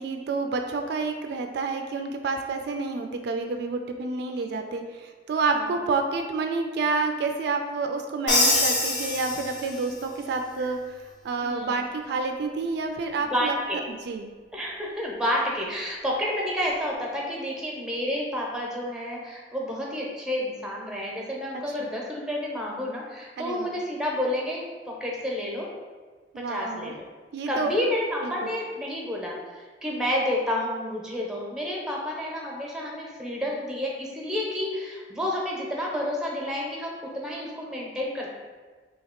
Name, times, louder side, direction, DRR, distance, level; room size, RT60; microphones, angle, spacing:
voice 1, 0.0-11.0 11.2-13.6 13.9-14.3 21.8-21.9 23.4-23.8 26.3-26.9 27.3-27.7 28.2-28.5, right 4 dB, 65° right, 5 dB, 0.3 m, -29 dB
voice 2, 4.1-4.7 5.5-5.7 10.6-10.7 11.4-11.8 13.3-13.8 14.5-25.7 26.5-27.1 27.5-38.3, left 1 dB, 5° right, -3 dB, 0.7 m, -30 dB
Crash cymbal, 8.3-10.0, left 2 dB, 80° left, 0.9 m, -24 dB
2.8 x 2.8 x 4.2 m, 1.4 s
head